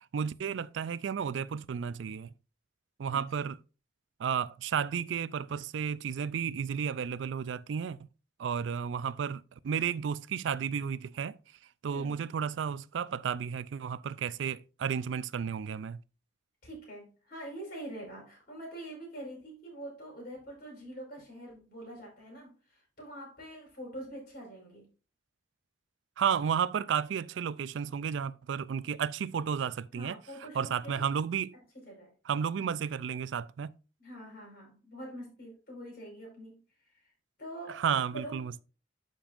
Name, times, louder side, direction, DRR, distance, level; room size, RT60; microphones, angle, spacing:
voice 1, 0.1-2.3 3.0-3.6 4.2-8.0 8.4-11.4 11.8-16.0 26.2-30.2 30.5-31.6 32.3-33.7 37.8-38.6, right 7 dB, 90° right, 0.4 m, -32 dB
voice 2, 3.1-3.5 11.9-12.2 16.6-24.8 29.9-31.1 31.7-32.1 34.0-36.6 37.4-38.6, right 1 dB, 55° left, 4.8 m, -45 dB
12.0 x 5.3 x 2.5 m
head